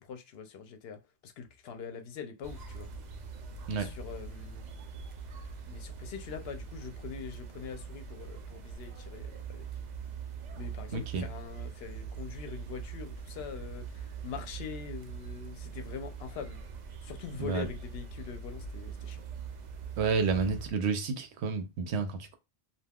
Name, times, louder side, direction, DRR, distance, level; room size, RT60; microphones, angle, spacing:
voice 1, 0.0-2.9 3.7-4.6 5.7-9.7 10.6-16.6 17.0-19.2, left 6 dB, 75° left, 0.8 m, -43 dB
sound 1, 2.4-20.7, right 6 dB, 55° right, 0.5 m, -43 dB
voice 2, 10.9-11.3 17.4-17.7 20.0-22.4, right 5 dB, 90° right, 0.9 m, -30 dB
2.3 x 2.3 x 3.4 m
omnidirectional pair, 1.1 m